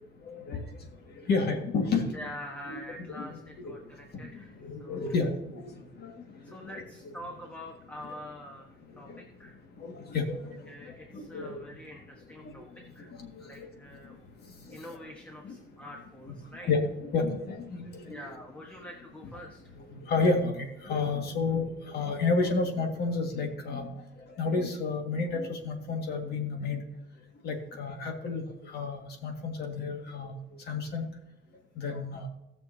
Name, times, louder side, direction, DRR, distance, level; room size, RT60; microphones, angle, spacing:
voice 1, 0.2-0.6 1.2-2.2 3.2-3.7 4.3-6.1 6.5-7.1 9.1-9.2 9.8-11.6 12.4-12.6 13.1-13.7 14.7-15.0 15.4-15.5 16.6-18.2 19.8-24.0 24.4-26.8 27.4-30.3 30.7-31.1 31.8-32.3, left 3 dB, 55° left, 3 dB, 1.9 m, -31 dB
voice 2, 2.1-5.1 6.4-9.6 10.7-13.1 13.4-14.3 14.7-16.7 18.1-19.7, left 1 dB, 5° left, 0 dB, 1.2 m, -46 dB
18.5 x 6.6 x 2.8 m, 0.91 s
cardioid pair, 170°, 20 cm